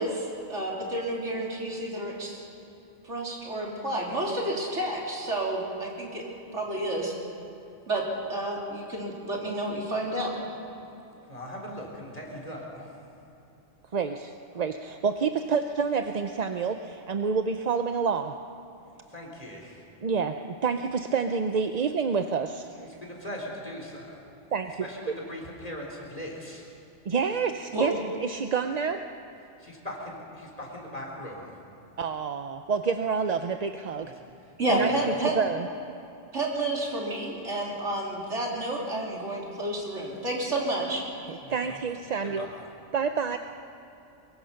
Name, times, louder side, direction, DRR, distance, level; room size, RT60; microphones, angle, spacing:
voice 1, 0.0-2.4 3.0-6.2 6.5-7.1 7.9-8.0 8.3-10.5 27.7-27.8 34.6-35.3 36.3-41.0, right 1 dB, 80° right, -3 dB, 3.9 m, -30 dB
voice 2, 11.3-12.9 19.1-19.8 22.8-24.2 24.8-26.6 29.6-31.6 35.0-35.1 41.4-41.6 42.4-42.5, equal, 30° left, -1 dB, 4.0 m, -39 dB
voice 3, 13.9-18.3 20.0-22.7 24.5-24.9 27.1-27.9 28.2-29.0 32.0-34.1 34.7-35.7 41.3-42.5 42.9-43.4, right 5 dB, 45° right, 7 dB, 0.6 m, -28 dB
23.5 x 22.0 x 5.8 m, 2.9 s
omnidirectional pair, 1.2 m